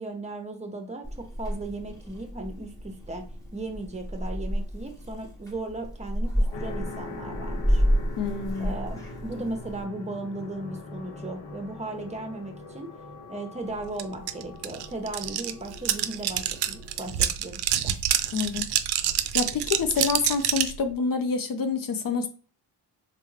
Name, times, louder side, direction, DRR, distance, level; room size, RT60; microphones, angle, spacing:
voice 1, 0.0-3.3 3.5-7.8 8.6-12.9 13.3-17.9, right 2 dB, 15° right, 5 dB, 0.8 m, -36 dB
Purr / Meow, 1.0-9.8, equal, 10° left, 1.1 m, -30 dB
sound 1, 6.5-17.2, left 3 dB, 85° left, 0.8 m, -42 dB
voice 2, 8.2-8.7 18.3-18.6 19.3-22.3, left 5 dB, 50° left, 7 dB, 0.6 m, -27 dB
sound 2, 14.0-14.1 14.3-20.8, right 11 dB, 65° right, 0.5 m, -26 dB
3.4 x 2.3 x 3.2 m, 0.39 s
cardioid pair, 70°, 43 cm